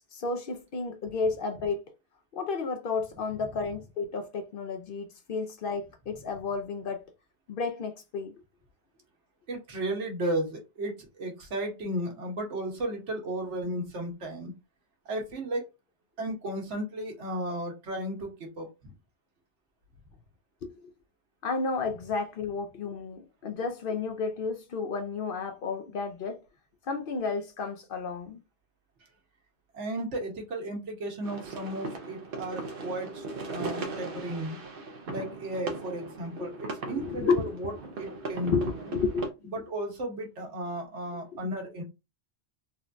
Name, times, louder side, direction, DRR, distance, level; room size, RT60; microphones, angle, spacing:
voice 1, 0.1-1.8 2.3-7.1 7.5-8.3 20.6-20.9 21.4-26.4 26.9-28.4 36.4-37.7 38.4-39.3 41.3-41.4, left 4 dB, 60° left, 0.7 m, -32 dB
voice 2, 9.5-14.5 15.0-15.7 16.2-18.9 29.7-34.6 35.1-38.8 39.4-41.8, right 1 dB, 90° right, 1.3 m, -34 dB
sound 1, 31.2-39.3, right 3 dB, 60° right, 0.8 m, -38 dB
3.6 x 2.2 x 2.5 m
omnidirectional pair, 1.2 m